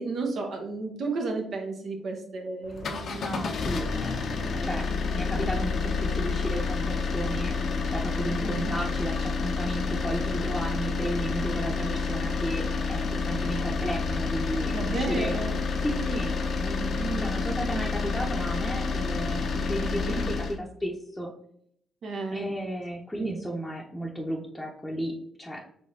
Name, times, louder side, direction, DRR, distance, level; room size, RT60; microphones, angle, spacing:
voice 1, 0.0-3.8 4.5-4.7 8.4-8.7 14.7-15.6 17.0-17.5 20.0-20.4 22.0-22.5 23.2-23.3, right 3 dB, 55° right, 3 dB, 0.7 m, -33 dB
sound 1, 2.7-20.6, left 4 dB, 55° left, 0.5 m, -29 dB
voice 2, 3.1-7.5 7.9-12.6 12.9-15.4 15.8-16.3 16.6-21.3 22.3-25.1 25.4-25.6, right 1 dB, 10° left, -2 dB, 0.7 m, -34 dB
4.7 x 3.1 x 2.7 m, 0.67 s
figure-of-eight pair, 40°, 0 cm